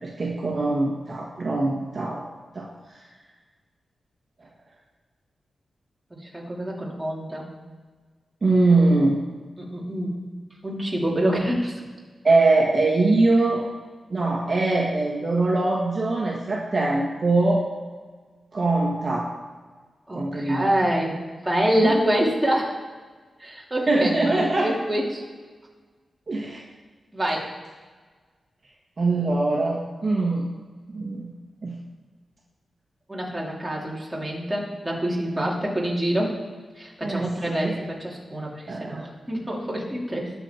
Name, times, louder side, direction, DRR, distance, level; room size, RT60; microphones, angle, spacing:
voice 1, 0.0-2.3 2.5-3.0 8.4-9.2 12.2-13.6 14.1-17.6 18.5-19.3 20.1-20.7 21.8-21.9 23.9-24.7 26.3-26.6 29.0-30.4 30.9-31.3 31.6-31.7 37.0-37.7 38.7-39.0, right 2 dB, 35° right, -3 dB, 1.7 m, -22 dB
voice 2, 6.1-7.4 9.6-10.3 10.6-11.8 20.1-22.8 23.4-25.2 27.1-27.5 33.1-36.3 36.8-40.3, right 1 dB, 10° right, -3 dB, 3.0 m, -26 dB
21.0 x 7.1 x 4.5 m, 1.4 s
wide cardioid pair, 155°, 0 cm